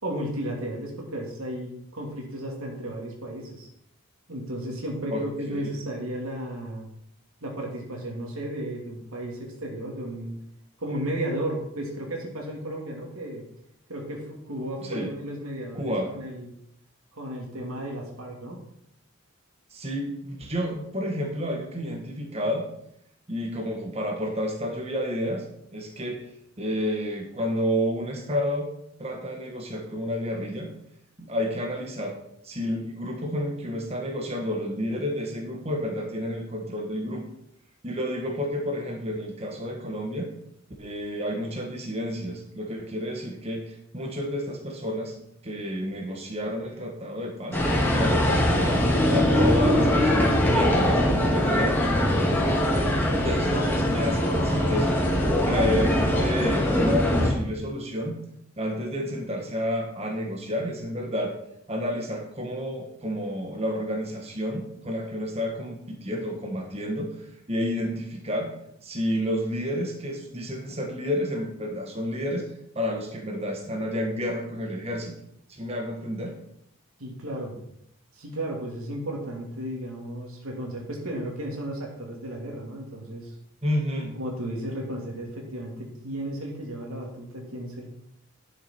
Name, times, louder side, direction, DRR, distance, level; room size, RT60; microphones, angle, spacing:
voice 1, 0.0-3.7 4.3-6.9 7.4-10.4 10.8-13.4 13.9-16.5 17.1-18.6 77.0-77.6 78.1-83.3 84.1-87.8, right 1 dB, 90° right, 0 dB, 2.6 m, -34 dB
voice 2, 5.1-5.7 14.8-15.1 15.7-16.1 19.7-22.6 23.3-25.4 25.7-26.3 26.6-28.7 29.0-30.7 31.2-32.2 32.4-37.2 37.8-40.3 40.8-45.1 45.4-47.6 47.9-51.7 53.1-55.0 55.4-58.2 58.6-61.3 61.7-67.2 67.5-68.5 68.8-72.4 72.7-75.1 75.5-76.3 83.6-84.2, equal, 30° right, 1 dB, 1.5 m, -30 dB
sound 1, 47.5-57.3, left 1 dB, 10° left, 2.2 m, -22 dB
11.0 x 6.7 x 4.5 m, 0.74 s
head